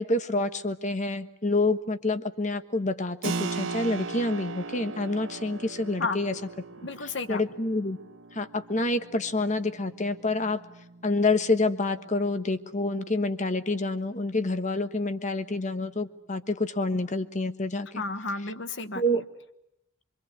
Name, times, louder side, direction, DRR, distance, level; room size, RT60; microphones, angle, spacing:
voice 1, 0.0-6.3 7.3-8.0 8.3-10.6 11.0-18.0 19.0-19.2, left 2 dB, 40° left, 10 dB, 1.3 m, -27 dB
Keyboard (musical), 3.2-13.6, right 4 dB, 80° right, 1.2 m, -39 dB
voice 2, 6.8-7.4 17.9-19.2, left 3 dB, 65° left, 10 dB, 1.5 m, -32 dB
25.0 x 25.0 x 8.2 m, 0.82 s
head